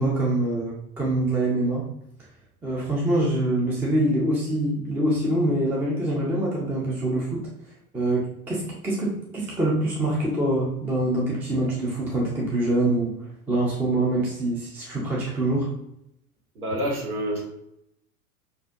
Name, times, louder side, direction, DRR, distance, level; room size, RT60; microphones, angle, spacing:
voice 1, 0.0-1.9 2.6-7.4 7.9-13.1 13.5-15.7, right 1 dB, 5° right, -5 dB, 0.4 m, -25 dB
voice 2, 16.5-17.5, right 1 dB, 75° right, -1 dB, 1.5 m, -27 dB
6.0 x 2.6 x 2.6 m, 0.80 s
figure-of-eight pair, 90°, 44 cm